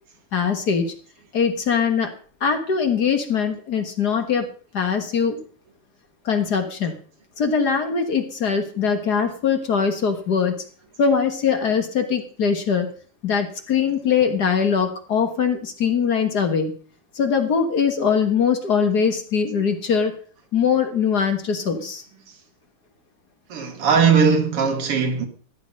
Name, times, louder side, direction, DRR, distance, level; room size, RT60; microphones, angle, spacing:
voice 1, 0.3-0.9 1.3-2.1 2.4-4.5 4.7-5.4 6.3-7.0 7.4-10.6 11.0-12.9 13.2-16.7 17.2-20.1 20.5-22.0, left 6 dB, 50° left, 1.9 m, -21 dB
voice 2, 23.5-25.3, right 6 dB, 90° right, 2.7 m, -19 dB
13.0 x 9.5 x 5.3 m
omnidirectional pair, 2.4 m